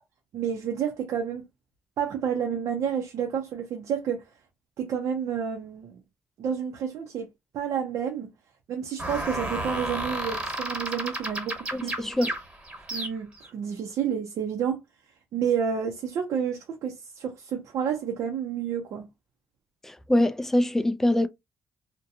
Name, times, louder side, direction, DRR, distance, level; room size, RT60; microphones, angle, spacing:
voice 1, 0.3-1.4 2.0-4.2 4.8-6.0 6.4-7.3 7.5-8.3 8.7-11.9 12.8-14.8 15.3-19.1, right 7 dB, 75° right, 0.6 m, -30 dB
sound 1, 9.0-13.5, right 1 dB, 20° right, 1.2 m, -32 dB
voice 2, 11.7-12.3 19.8-21.3, left 1 dB, 5° left, 0.3 m, -24 dB
2.6 x 2.2 x 2.6 m
cardioid pair, 95°, 5 cm